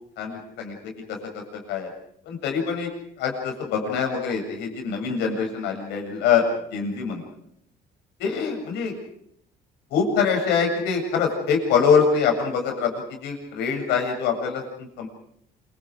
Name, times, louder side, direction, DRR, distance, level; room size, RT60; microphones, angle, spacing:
voice 1, 0.2-1.9 2.3-2.9 3.2-6.5 6.7-7.2 8.2-8.9 9.9-15.1, left 6 dB, 85° left, 2 dB, 7.7 m, -24 dB
27.5 x 25.5 x 5.1 m, 0.71 s
cardioid pair, 110°, 17 cm